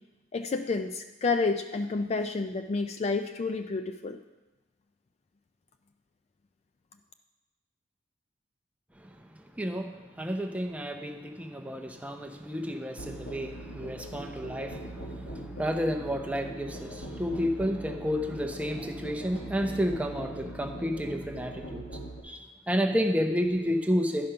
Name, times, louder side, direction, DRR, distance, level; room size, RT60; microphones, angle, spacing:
voice 1, 0.3-4.2, left 4 dB, 35° left, 7 dB, 0.3 m, -30 dB
voice 2, 9.6-9.9 10.2-21.8 22.2-24.3, equal, 5° right, 4 dB, 0.6 m, -31 dB
Musical instrument, 13.0-22.2, right 1 dB, 70° left, 1.5 m, -42 dB
11.5 x 5.2 x 5.7 m, 1.1 s
head